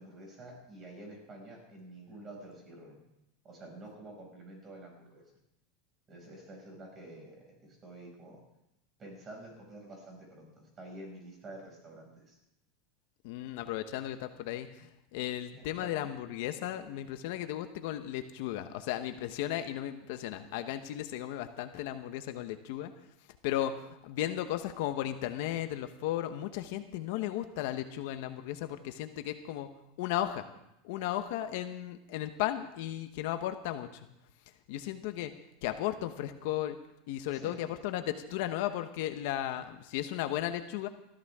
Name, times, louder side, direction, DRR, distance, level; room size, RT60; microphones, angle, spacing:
voice 1, 0.0-3.0 3.4-5.2 6.1-8.4 9.0-10.5 10.8-12.4 15.5-16.1 37.3-37.6, right 1 dB, 25° right, 0 dB, 6.0 m, -49 dB
voice 2, 13.2-22.9 23.4-29.7 30.0-30.4 30.8-34.1 34.7-35.3 35.6-36.8 37.1-40.9, left 12 dB, 65° left, 9 dB, 1.0 m, -35 dB
19.5 x 14.0 x 3.7 m, 0.84 s
supercardioid pair, 145°, 0 cm